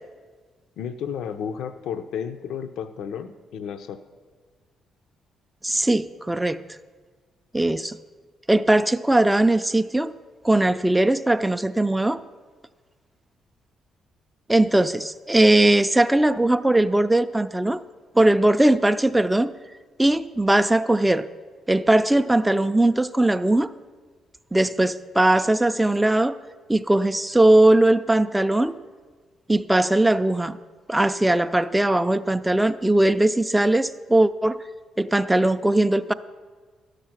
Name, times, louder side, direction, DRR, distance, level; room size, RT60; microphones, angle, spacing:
voice 1, 0.8-4.0, left 7 dB, 80° left, 9 dB, 0.5 m, -32 dB
voice 2, 5.6-6.6 7.5-8.0 8.5-10.1 10.4-12.2 14.5-17.8 18.2-19.5 20.0-21.3 21.7-23.7 24.5-26.4 26.7-28.8 29.5-30.6 30.9-34.6 35.0-36.1, right 1 dB, 10° right, 10 dB, 0.3 m, -19 dB
12.0 x 6.5 x 5.9 m, 1.5 s
cardioid pair, 90°, 0 cm